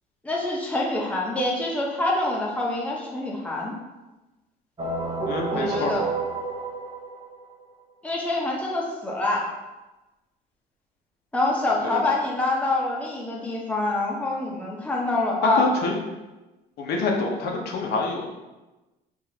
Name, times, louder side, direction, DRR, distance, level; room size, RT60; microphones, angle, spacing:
voice 1, 0.2-3.7 5.5-6.1 8.0-9.4 11.3-15.6, left 2 dB, 10° left, -3 dB, 0.8 m, -26 dB
sound 1, 4.8-7.7, right 3 dB, 30° right, 0.8 m, -30 dB
voice 2, 5.3-5.9 11.8-12.0 15.5-16.0 16.8-18.3, left 3 dB, 75° left, 0 dB, 0.8 m, -26 dB
4.8 x 2.5 x 2.8 m, 1.1 s
cardioid pair, 110°, 17 cm